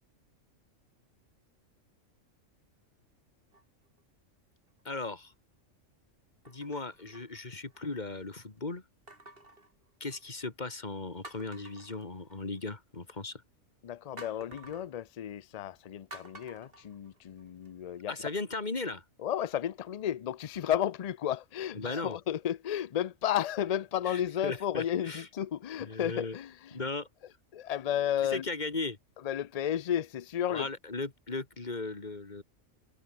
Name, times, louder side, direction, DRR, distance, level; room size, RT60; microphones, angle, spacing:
sound 1, 3.5-4.0 4.7-4.8 6.5-7.9 9.1-10.4 10.8-10.9 11.2-12.7 14.2-14.9 16.1-17.7 18.1-18.2, right 2 dB, 45° right, 5.1 m, -52 dB
voice 1, 4.8-5.3 6.5-8.8 10.0-13.4 18.1-19.0 21.7-22.2 24.1-25.3 25.8-26.4 26.7-27.1 28.2-29.0 30.5-32.4, left 3 dB, 35° left, 2.2 m, -37 dB
voice 2, 13.8-18.1 19.2-26.5 27.5-28.4 29.3-30.7, left 10 dB, 90° left, 0.3 m, -33 dB
omnidirectional pair, 1.4 m